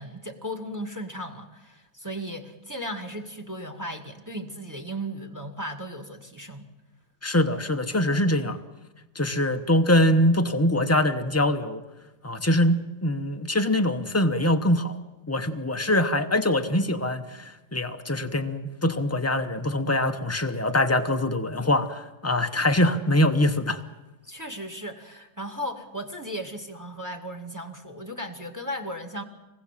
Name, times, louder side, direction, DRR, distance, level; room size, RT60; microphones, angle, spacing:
voice 1, 0.0-6.7 24.2-29.2, equal, 10° right, 5 dB, 1.9 m, -36 dB
voice 2, 7.2-8.6 9.1-11.8 12.2-15.0 15.3-23.8, left 1 dB, 20° left, 7 dB, 0.4 m, -23 dB
26.0 x 20.0 x 7.5 m, 1.1 s
omnidirectional pair, 2.2 m